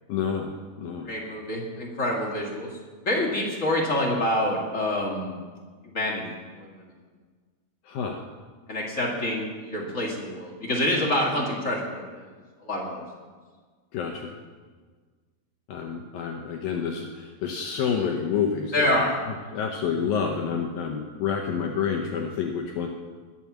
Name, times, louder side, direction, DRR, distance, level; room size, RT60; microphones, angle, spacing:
voice 1, 0.1-0.5 0.8-1.1 7.9-8.2 13.9-14.3 15.7-18.9 19.5-22.9, left 7 dB, 70° left, 2 dB, 2.4 m, -28 dB
voice 2, 1.0-2.7 3.0-5.4 5.8-6.8 8.7-12.3 12.6-13.0 18.7-19.1, left 1 dB, 45° left, -2 dB, 0.9 m, -27 dB
21.0 x 7.0 x 7.3 m, 1.5 s
omnidirectional pair, 4.8 m